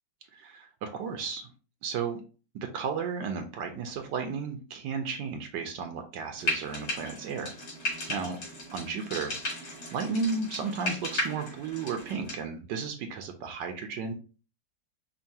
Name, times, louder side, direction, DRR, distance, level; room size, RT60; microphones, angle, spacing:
voice 1, 0.3-1.5 1.8-2.2 2.7-7.5 8.1-8.4 8.7-9.3 9.9-14.1, right 5 dB, 80° right, 5 dB, 1.2 m, -33 dB
Frying (food), 6.4-12.4, left 1 dB, 75° left, 2.6 m, -35 dB
5.4 x 2.5 x 2.7 m, 0.36 s
omnidirectional pair, 1.9 m